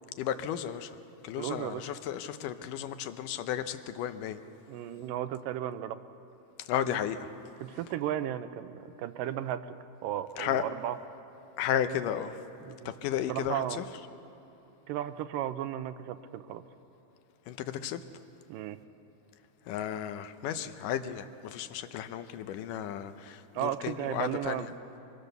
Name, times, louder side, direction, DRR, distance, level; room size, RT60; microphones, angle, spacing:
voice 1, 0.2-0.9 1.2-4.4 6.6-7.3 10.4-10.6 11.6-12.4 12.9-13.8 17.5-18.0 19.7-24.7, left 10 dB, 80° left, 10 dB, 2.3 m, -33 dB
voice 2, 1.4-1.8 4.7-6.0 6.9-7.0 7.6-9.6 10.0-11.0 12.6-12.9 13.3-13.8 14.9-16.6 18.5-18.8 23.5-24.7, right 12 dB, 90° right, 11 dB, 2.4 m, -34 dB
23.5 x 22.5 x 6.7 m, 2.9 s
omnidirectional pair, 3.8 m